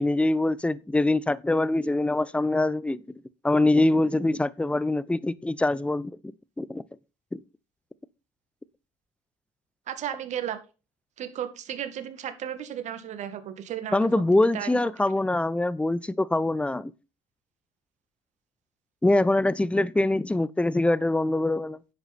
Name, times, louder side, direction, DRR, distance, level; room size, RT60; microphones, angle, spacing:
voice 1, 0.0-3.0 3.4-6.2 6.6-6.8 7.3-7.4 13.9-16.9 19.0-21.8, left 2 dB, 10° left, 0.7 m, -24 dB
voice 2, 9.9-10.6 11.2-14.8, right 10 dB, 55° right, 2.0 m, -34 dB
10.0 x 8.0 x 4.3 m
hypercardioid pair, 65°, 15 cm